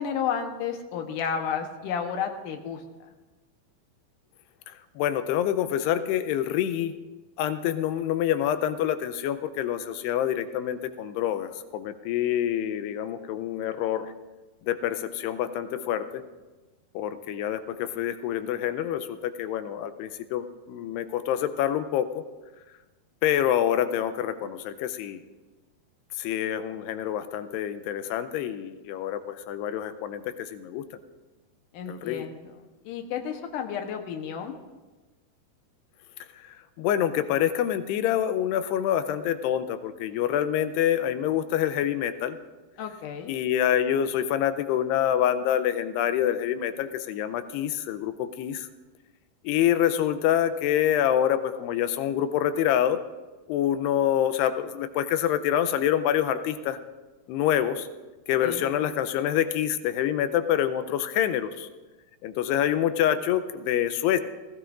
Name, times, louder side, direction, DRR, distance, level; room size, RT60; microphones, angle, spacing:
voice 1, 0.0-3.1 31.7-34.6 42.8-43.3 58.4-58.7, left 7 dB, 70° left, 4 dB, 2.1 m, -32 dB
voice 2, 5.0-6.9 7.4-14.1 14.7-16.2 17.0-22.2 23.2-25.2 26.2-30.9 31.9-32.3 36.8-42.4 43.3-48.7 49.4-53.0 53.5-56.8 57.3-57.9 58.3-61.7 62.2-64.2, left 10 dB, 90° left, 11 dB, 2.7 m, -26 dB
19.5 x 15.5 x 2.5 m, 1.2 s
omnidirectional pair, 4.7 m